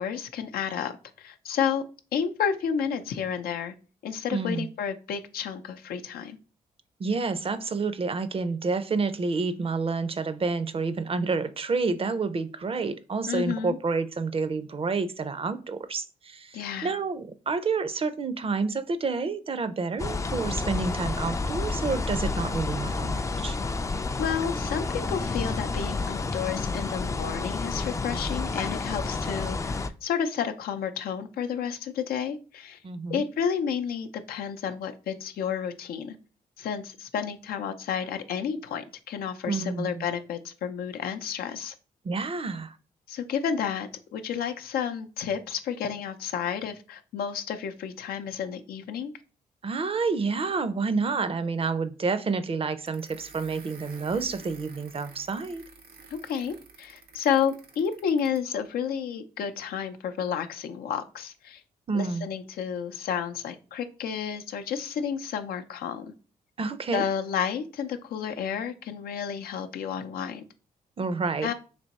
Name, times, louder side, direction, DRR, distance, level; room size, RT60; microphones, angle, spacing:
voice 1, 0.0-1.9 2.1-3.7 4.0-6.4 13.3-13.8 16.5-16.9 24.2-32.8 33.1-36.2 36.6-41.7 43.1-49.1 56.1-61.6 61.9-66.1 66.9-70.4 71.4-71.5, left 7 dB, 80° left, 7 dB, 0.5 m, -31 dB
voice 2, 4.3-4.7 7.0-23.6 32.8-33.3 39.5-40.1 42.0-42.8 49.6-55.6 61.9-62.3 66.6-67.0 71.0-71.5, right 4 dB, 40° right, 12 dB, 0.5 m, -29 dB
sound 1, 20.0-29.9, left 3 dB, 20° left, 0.3 m, -30 dB
sound 2, 52.9-58.5, right 4 dB, 80° right, 0.8 m, -51 dB
3.4 x 2.9 x 4.0 m, 0.36 s
cardioid pair, 65°, 15 cm